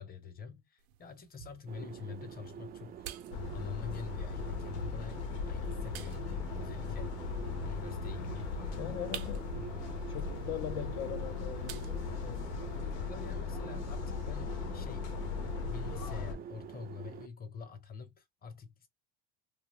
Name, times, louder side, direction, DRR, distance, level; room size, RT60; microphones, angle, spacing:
voice 1, 0.0-3.1 3.5-7.4 7.6-9.0 9.5-10.1 12.8-15.2 15.6-18.9, left 6 dB, 25° left, 0.9 m, -46 dB
sound 1, 0.8-12.8, right 11 dB, 80° right, 0.7 m, -53 dB
sound 2, 1.7-17.3, right 9 dB, 30° right, 0.4 m, -47 dB
sound 3, 3.3-16.3, left 5 dB, 85° left, 0.8 m, -38 dB
voice 2, 8.8-9.8 10.1-12.6, left 11 dB, 55° left, 0.5 m, -41 dB
2.4 x 2.2 x 3.4 m
supercardioid pair, 100°, 33 cm